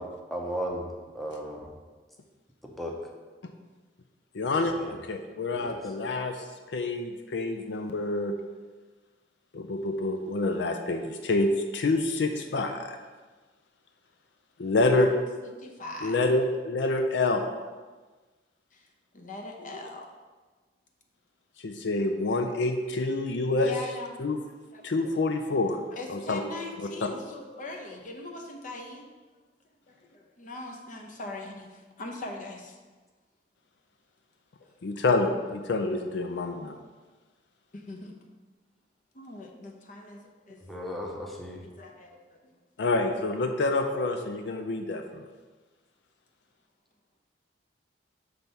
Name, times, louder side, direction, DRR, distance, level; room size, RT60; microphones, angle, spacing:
voice 1, 0.0-1.7 2.6-3.0 4.4-5.0 5.5-5.9 40.6-41.6, equal, ahead, 0 dB, 0.7 m, -36 dB
voice 2, 4.3-4.7 5.1-6.4 6.7-8.3 9.5-13.0 14.6-15.1 16.0-17.5 19.7-19.8 21.6-23.7 24.2-24.4 24.8-25.8 26.1-26.4 27.0-27.1 34.8-36.8 42.8-45.2, left 2 dB, 70° left, 5 dB, 0.5 m, -27 dB
voice 3, 15.1-16.3 18.7-18.9 19.1-20.1 23.6-24.2 24.7-25.1 25.9-29.0 29.9-32.7 34.6-34.7 37.7-38.1 39.1-40.6 41.8-42.6 43.9-44.0, left 2 dB, 50° left, 2 dB, 0.8 m, -41 dB
5.9 x 3.4 x 5.3 m, 1.3 s
head